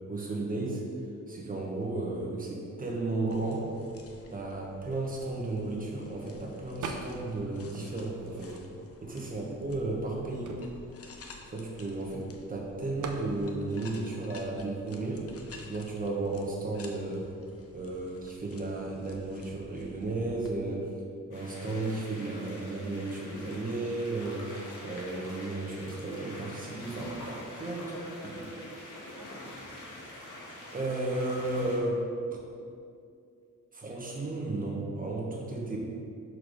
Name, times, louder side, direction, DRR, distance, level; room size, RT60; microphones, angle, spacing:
voice 1, 0.1-0.8 1.3-3.7 4.3-8.6 9.0-10.6 11.4-15.3 15.7-17.3 17.7-20.9 21.3-24.6 24.8-27.9 28.2-28.3 30.7-32.4 33.7-35.8, right 2 dB, 25° right, -2 dB, 1.2 m, -34 dB
sound 1, 3.3-20.5, left 3 dB, 50° left, 0.7 m, -52 dB
sound 2, 6.8-7.4 7.7-9.0 9.6-9.7 9.9-12.2 13.0-13.3, right 4 dB, 70° right, 0.7 m, -41 dB
sound 3, 21.3-31.8, left 1 dB, 75° left, 1.6 m, -45 dB
voice 2, 27.4-29.6, right 1 dB, 10° left, -4 dB, 0.8 m, -49 dB
6.3 x 4.6 x 5.2 m, 2.4 s
wide cardioid pair, 145°, 31 cm